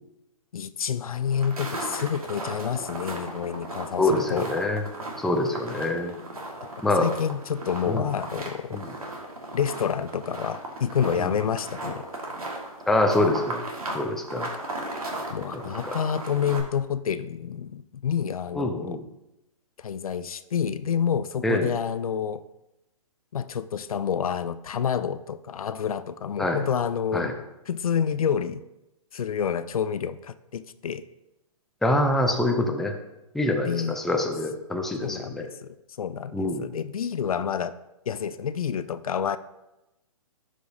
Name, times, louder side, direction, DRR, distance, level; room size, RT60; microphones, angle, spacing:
voice 1, 0.5-4.5 7.0-8.8 9.5-12.0 15.3-19.0 19.8-22.4 23.3-27.3 27.7-28.6 29.1-31.0 33.6-34.0 35.0-37.7 38.1-39.4, left 7 dB, 75° left, 14 dB, 0.4 m, -28 dB
sound 1, 1.2-16.6, right 1 dB, 85° right, 1.7 m, -36 dB
voice 2, 4.0-4.8 5.2-6.1 6.8-7.1 7.9-8.1 8.7-8.9 11.2-11.3 12.9-13.6 13.9-14.5 15.5-16.0 18.5-19.0 21.4-21.7 26.4-26.6 27.1-27.3 31.8-32.9 33.3-35.5 36.3-36.7, left 1 dB, ahead, 3 dB, 0.5 m, -25 dB
11.5 x 5.1 x 2.7 m, 0.94 s
hypercardioid pair, 130°, 18 cm